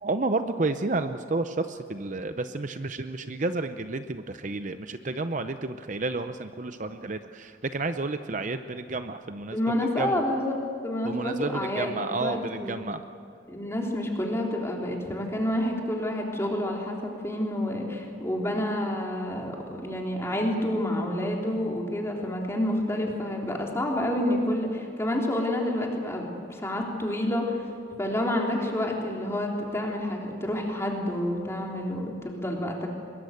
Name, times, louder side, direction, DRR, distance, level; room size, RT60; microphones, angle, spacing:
voice 1, 0.0-10.2 11.0-13.0, right 3 dB, 40° right, 9 dB, 0.7 m, -31 dB
voice 2, 9.5-10.5 10.8-12.8 13.5-19.5 19.8-27.6 28.0-32.9, left 1 dB, 15° left, -1 dB, 3.4 m, -29 dB
23.5 x 22.0 x 8.0 m, 2.5 s
head